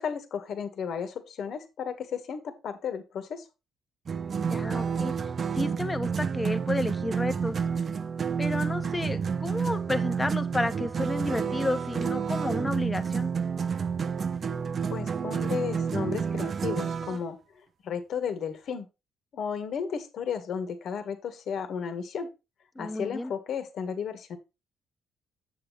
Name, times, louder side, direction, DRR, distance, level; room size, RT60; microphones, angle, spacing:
voice 1, 0.0-3.4 14.9-17.4 17.8-18.9 19.3-22.3 22.8-24.4, left 7 dB, 65° left, 1.7 m, -34 dB
sound 1, 4.1-17.2, right 6 dB, 45° right, 0.7 m, -29 dB
voice 2, 4.5-5.1 5.5-7.6 8.4-13.3 22.7-23.3, left 2 dB, 20° left, 1.3 m, -31 dB
8.4 x 7.7 x 3.2 m
cardioid pair, 90°, 0 cm